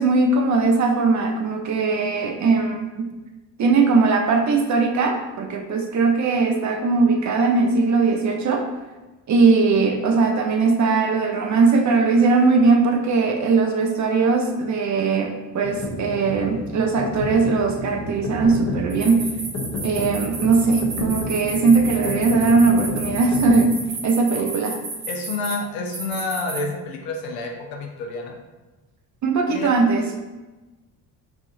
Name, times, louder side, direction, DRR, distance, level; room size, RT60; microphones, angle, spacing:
voice 1, 0.0-3.1 3.6-8.6 9.3-19.3 19.8-23.8 24.0-24.7 29.2-30.1, right 4 dB, 40° right, 3 dB, 0.5 m, -19 dB
sound 1, 15.6-23.6, left 3 dB, 35° left, 0.7 m, -31 dB
sound 2, 18.9-25.5 25.9-26.6, right 3 dB, 65° right, 1.2 m, -32 dB
voice 2, 25.1-28.4 29.5-29.7, left 3 dB, 70° left, 2 dB, 0.7 m, -29 dB
3.3 x 2.5 x 2.5 m, 1.2 s
hypercardioid pair, 55°, 48 cm